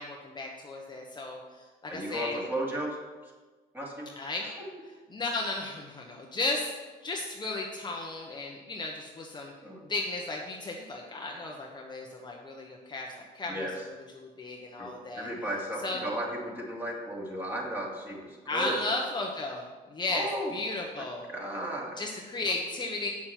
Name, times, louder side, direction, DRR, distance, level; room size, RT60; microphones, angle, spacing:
voice 1, 0.0-2.4 4.2-4.5 5.1-6.7 7.0-9.5 9.9-13.7 14.1-15.3 15.8-16.0 18.5-19.6 19.9-20.3 20.5-21.3 22.0-23.1, left 2 dB, 25° left, 0 dB, 1.1 m, -34 dB
voice 2, 1.9-3.0 3.2-3.3 3.7-4.2 4.4-4.7 9.6-9.9 13.5-13.9 14.8-18.8 20.1-20.5 21.0-22.0, right 1 dB, 10° right, -3 dB, 2.7 m, -35 dB
8.4 x 6.9 x 5.9 m, 1.3 s
cardioid pair, 110°, 17 cm